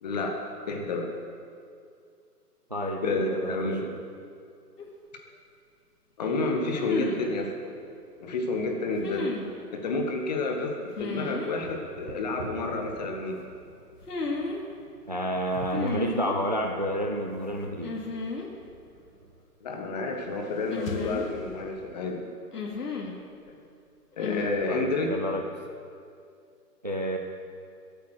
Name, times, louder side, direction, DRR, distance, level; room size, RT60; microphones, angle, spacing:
voice 1, 0.0-0.4 0.7-1.1 3.0-3.9 6.2-7.7 8.2-9.3 9.7-13.4 19.6-22.3 24.2-25.1, left 3 dB, 25° left, 2 dB, 1.4 m, -30 dB
voice 2, 2.7-3.9 15.1-18.0 24.7-25.5 26.8-27.2, equal, 30° right, 2 dB, 0.5 m, -30 dB
sound 1, 4.8-4.9 6.7-7.3 9.0-9.5 11.0-11.5 14.0-14.6 15.7-16.4 17.8-18.5 18.7-18.8 20.7-21.6 22.5-23.2 24.2-24.5, left 3 dB, 70° left, 2.8 m, -33 dB
sound 2, 11.6-19.4, right 3 dB, 65° right, 2.0 m, -47 dB
sound 3, 19.9-22.3, left 6 dB, 55° left, 1.1 m, -42 dB
22.0 x 8.6 x 6.4 m, 2.4 s
hypercardioid pair, 165°, 48 cm